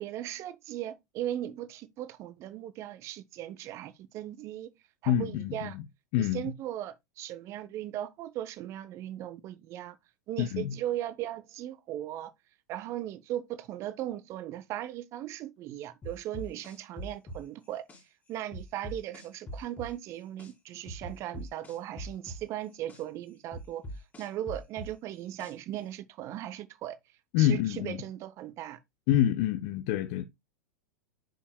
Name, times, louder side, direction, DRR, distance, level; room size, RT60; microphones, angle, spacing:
voice 1, 0.0-4.7 5.0-5.8 6.2-10.0 10.3-12.3 12.7-17.9 18.3-23.8 24.2-27.0 27.4-28.8, right 12 dB, 30° right, 0.6 m, -38 dB
voice 2, 5.1-5.8 6.1-6.5 10.4-10.7 27.3-28.0 29.1-30.2, left 11 dB, 40° left, 0.6 m, -27 dB
sound 1, 16.0-18.0 18.5-20.5 20.9-23.0 23.5-25.8, equal, 15° left, 2.1 m, -42 dB
8.5 x 5.4 x 2.2 m
figure-of-eight pair, 95°, 9 cm